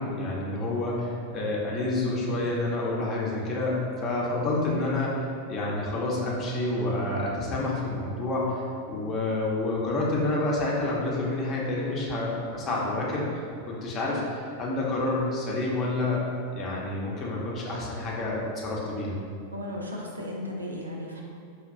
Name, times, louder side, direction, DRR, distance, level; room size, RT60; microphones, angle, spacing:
voice 1, 0.0-16.2 16.6-19.2, left 2 dB, 30° left, -4 dB, 0.8 m, -28 dB
voice 2, 19.5-21.2, left 1 dB, 80° right, -1 dB, 0.5 m, -35 dB
5.3 x 2.2 x 2.6 m, 2.5 s
figure-of-eight pair, 90°, 0 cm